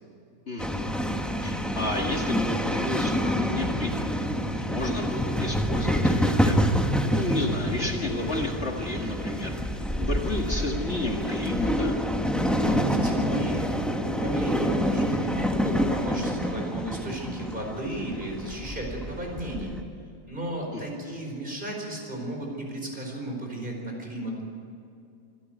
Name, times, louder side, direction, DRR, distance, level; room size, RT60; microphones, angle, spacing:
voice 1, 0.5-0.9 1.4-4.0 4.5-6.8 7.1-9.6 10.0-12.0 20.7-21.2, left 2 dB, 50° left, 1 dB, 2.3 m, -32 dB
sound 1, 0.6-19.8, equal, ahead, 1.3 m, -27 dB
voice 2, 12.6-13.7 14.0-19.7 20.3-24.4, right 1 dB, 35° right, 0 dB, 5.1 m, -34 dB
25.5 x 13.5 x 9.3 m, 2.6 s
omnidirectional pair, 1.5 m